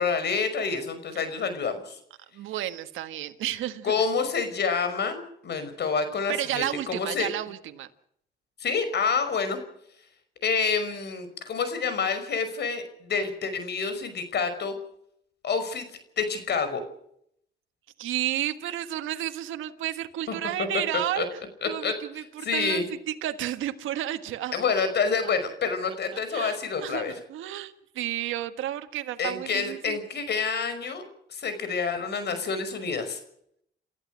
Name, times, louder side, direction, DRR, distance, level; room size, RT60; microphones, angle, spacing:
voice 1, 0.0-2.0 3.8-7.3 8.6-9.6 10.4-14.7 15.4-15.9 16.2-16.8 20.3-20.4 21.2-21.3 21.6-21.9 22.4-22.8 24.5-27.1 29.2-31.0 31.3-33.2, left 5 dB, 60° left, 10 dB, 5.5 m, -28 dB
voice 2, 2.3-3.9 6.3-7.9 18.0-21.3 21.7-24.5 26.1-30.0, right 13 dB, 85° right, 8 dB, 1.6 m, -32 dB
29.5 x 14.0 x 6.4 m, 0.70 s
cardioid pair, 90°, 20 cm